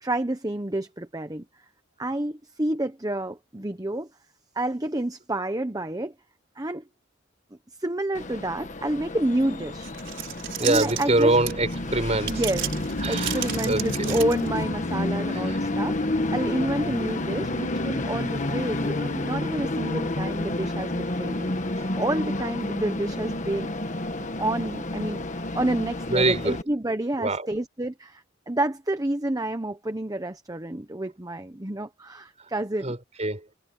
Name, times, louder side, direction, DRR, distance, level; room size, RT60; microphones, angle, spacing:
voice 1, 0.0-1.4 2.0-4.1 4.5-6.1 6.6-6.8 7.8-9.9 10.6-11.4 12.3-12.7 13.1-21.6 21.9-23.7 24.4-33.0, right 1 dB, 15° right, 1.0 m, -29 dB
Train, 8.1-26.6, left 1 dB, 35° left, 1.4 m, -30 dB
sound 1, 9.8-11.8 12.2-14.6, right 12 dB, 60° right, 6.3 m, -33 dB
voice 2, 10.6-12.4 13.0-14.1 15.3-15.6 21.8-21.9 26.1-26.6 27.2-27.5 32.8-33.5, right 2 dB, 35° right, 4.7 m, -25 dB
sound 2, 12.6-21.8, left 2 dB, 70° left, 1.7 m, -39 dB
head